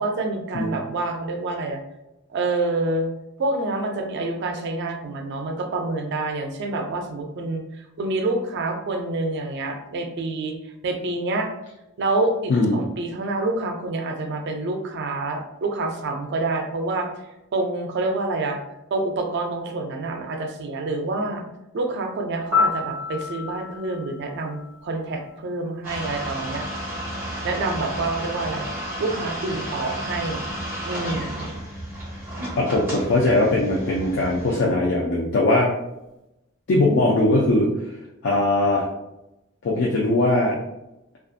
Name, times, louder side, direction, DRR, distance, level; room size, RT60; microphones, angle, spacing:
voice 1, 0.0-1.8 2.3-3.1 3.4-10.6 10.8-11.5 12.0-17.1 17.5-18.6 18.9-21.4 21.7-26.7 27.4-28.7 29.0-30.5 30.8-31.5, right 2 dB, 55° right, 4 dB, 0.4 m, -27 dB
voice 2, 12.5-12.9 32.6-35.7 36.7-37.7 38.2-38.9 39.6-40.6, left 2 dB, 60° left, -3 dB, 0.4 m, -20 dB
Piano, 22.5-25.4 33.6-33.8, left 5 dB, 75° left, 1.0 m, -28 dB
sound 1, 25.8-34.6, equal, 10° right, 0.9 m, -32 dB
2.5 x 2.3 x 2.4 m, 0.92 s
head